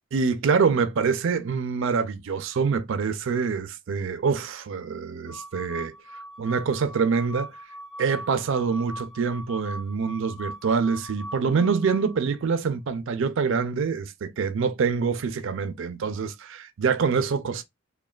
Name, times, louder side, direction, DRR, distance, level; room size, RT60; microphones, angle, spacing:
voice 1, 0.1-5.9 6.4-7.5 8.0-17.6, right 5 dB, 60° right, 0.4 m, -25 dB
sound 1, 5.3-12.3, equal, 10° left, 0.7 m, -41 dB
3.1 x 2.1 x 2.3 m
head